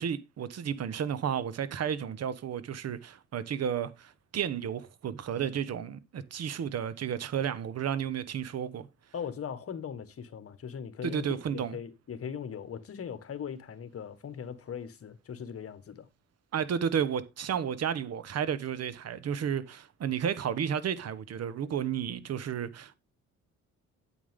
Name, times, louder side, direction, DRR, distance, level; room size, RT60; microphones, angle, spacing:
voice 1, 0.0-8.9 11.0-11.8 16.5-23.0, right 8 dB, 55° right, 1.1 m, -32 dB
voice 2, 9.1-11.3 11.5-16.1, left 7 dB, 50° left, 1.6 m, -39 dB
8.9 x 8.4 x 3.7 m
cardioid pair, 90°, 30 cm